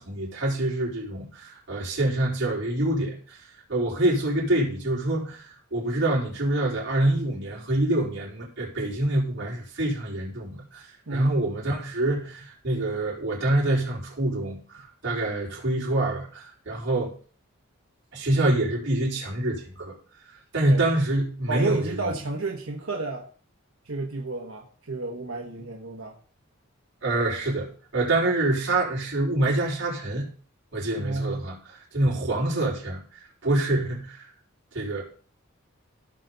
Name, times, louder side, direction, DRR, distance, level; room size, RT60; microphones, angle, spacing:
voice 1, 0.0-3.4 3.7-17.1 18.1-19.9 20.5-22.1 27.0-30.3 30.7-31.6 31.9-34.3 34.7-35.0, right 1 dB, 55° right, -4 dB, 4.1 m, -26 dB
voice 2, 11.1-11.4 20.6-20.9 21.5-23.3 23.8-26.2 31.0-31.5, right 3 dB, 90° right, 1 dB, 1.2 m, -31 dB
15.5 x 5.8 x 4.0 m, 0.43 s
head